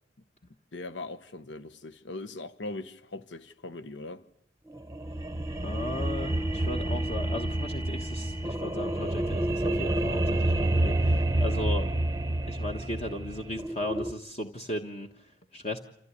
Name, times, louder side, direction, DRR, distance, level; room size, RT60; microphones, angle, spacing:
voice 1, 0.7-4.2, left 2 dB, 85° left, 1.1 m, -40 dB
sound 1, 4.7-14.1, right 1 dB, 15° right, 0.8 m, -29 dB
voice 2, 5.6-11.9 12.5-15.8, left 1 dB, 35° left, 1.3 m, -36 dB
27.5 x 15.0 x 9.7 m
head